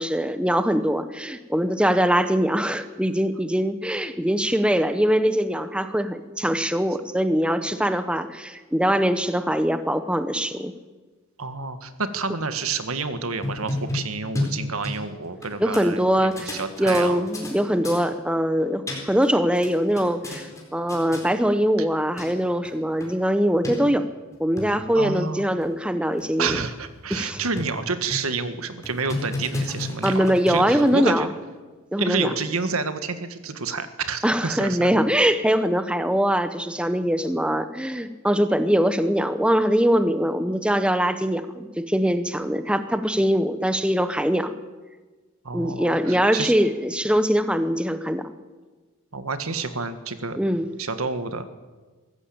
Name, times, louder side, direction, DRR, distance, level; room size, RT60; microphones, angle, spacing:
voice 1, 0.0-10.7 15.6-24.0 24.4-26.6 27.1-27.4 30.0-31.3 31.9-32.3 34.2-44.5 45.5-48.2 50.4-50.7, equal, 5° right, 10 dB, 0.8 m, -22 dB
voice 2, 11.4-17.3 24.9-25.4 26.4-31.3 32.0-34.9 45.4-46.5 49.1-50.4 50.8-51.4, right 4 dB, 85° right, 10 dB, 1.7 m, -29 dB
sound 1, 13.4-15.5 15.7-15.8 16.3-17.5 17.8-18.0 18.6-19.3 19.6-20.6 20.9-21.2 21.9-22.0 22.2-22.3 22.6-22.7 23.0-23.1 23.6-23.7 24.3-24.7 25.2-25.3 25.6-25.7 26.2-26.3 26.6-26.7 27.1-27.8 28.1-28.4 28.8-31.0, left 2 dB, 15° left, 4.3 m, -31 dB
23.5 x 14.0 x 8.7 m, 1.3 s
head